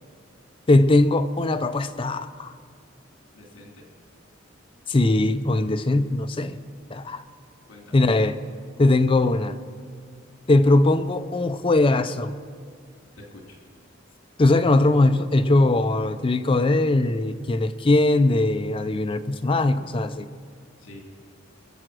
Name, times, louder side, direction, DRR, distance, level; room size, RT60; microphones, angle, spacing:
voice 1, 0.7-2.5 4.9-6.6 6.9-7.2 7.9-8.4 8.8-9.6 10.5-12.3 14.4-20.3, left 2 dB, 25° left, 0.4 m, -20 dB
voice 2, 3.3-3.9 7.6-8.0 13.2-13.6 20.8-21.0, left 1 dB, 70° left, 3.1 m, -46 dB
21.5 x 7.7 x 6.2 m
head